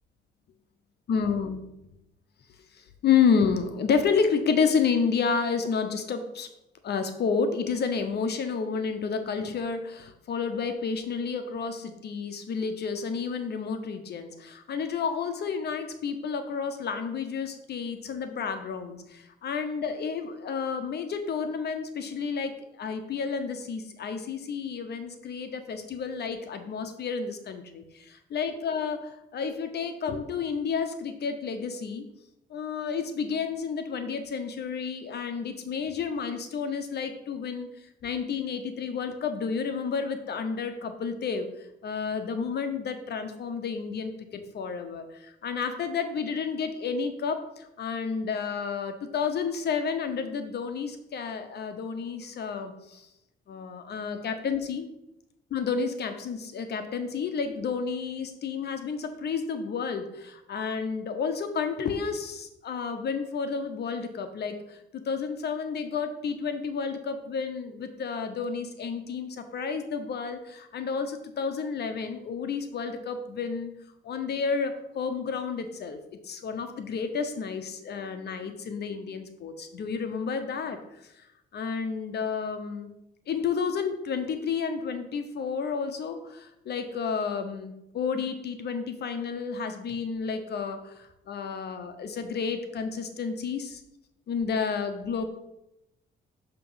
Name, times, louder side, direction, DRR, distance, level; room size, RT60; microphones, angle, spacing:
voice 1, 1.1-1.7 2.8-6.5 6.8-32.0 32.5-37.7 38.0-41.5 41.8-53.1 53.5-54.9 55.5-73.7 74.0-76.0 76.2-80.8 81.5-82.9 83.3-93.8 94.3-95.2, left 5 dB, 55° left, 8 dB, 0.7 m, -30 dB
6.9 x 2.9 x 5.5 m, 0.88 s
cardioid pair, 90°, 20 cm